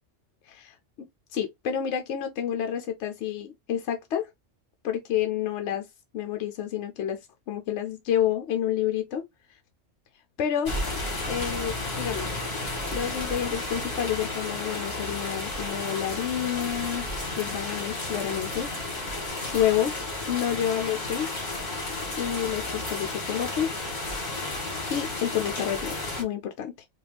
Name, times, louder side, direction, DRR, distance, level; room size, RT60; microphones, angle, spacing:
voice 1, 0.4-0.8 1.3-4.3 4.8-5.9 6.1-7.2 7.5-9.2 10.4-10.7 11.3-12.3 12.9-17.1 17.3-19.0 19.5-19.9 20.3-21.3 22.2-23.7 24.9-26.9, left 10 dB, 75° left, 0.9 m, -29 dB
sound 1, 10.7-26.2, left 2 dB, 55° left, 1.9 m, -32 dB
4.2 x 2.3 x 3.4 m
omnidirectional pair, 1.3 m